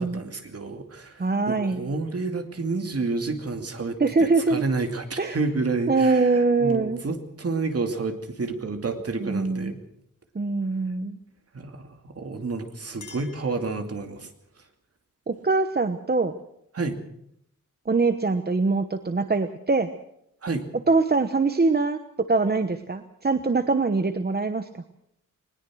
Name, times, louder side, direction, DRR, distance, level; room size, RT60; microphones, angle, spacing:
voice 1, 0.0-9.8 11.5-14.3 16.7-17.0 20.4-20.7, right 3 dB, 50° right, 6 dB, 2.6 m, -30 dB
voice 2, 1.2-1.8 4.0-4.6 5.2-5.4 5.9-7.0 9.2-9.7 10.3-11.2 15.3-16.3 17.9-19.9 20.9-24.7, right 3 dB, 30° right, 9 dB, 1.0 m, -23 dB
Chink clink, 12.9-14.3, left 5 dB, 65° left, 5.7 m, -50 dB
21.0 x 20.0 x 6.3 m, 0.75 s
wide cardioid pair, 155°, 32 cm